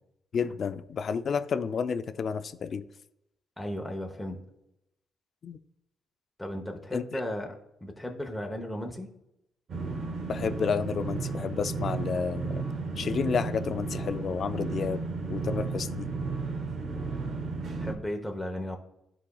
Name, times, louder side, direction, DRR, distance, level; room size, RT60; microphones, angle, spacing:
voice 1, 0.3-2.8 5.4-5.6 6.9-7.2 10.3-12.6 13.0-15.0 15.3-16.1, left 6 dB, 50° left, 13 dB, 0.4 m, -31 dB
voice 2, 3.6-4.4 6.4-7.5 7.8-9.1 17.8-18.8, left 1 dB, 5° left, 1 dB, 0.9 m, -35 dB
sound 1, 9.7-17.9, right 4 dB, 60° right, 1.0 m, -33 dB
11.0 x 4.1 x 2.3 m, 0.83 s
cardioid pair, 90°, 0 cm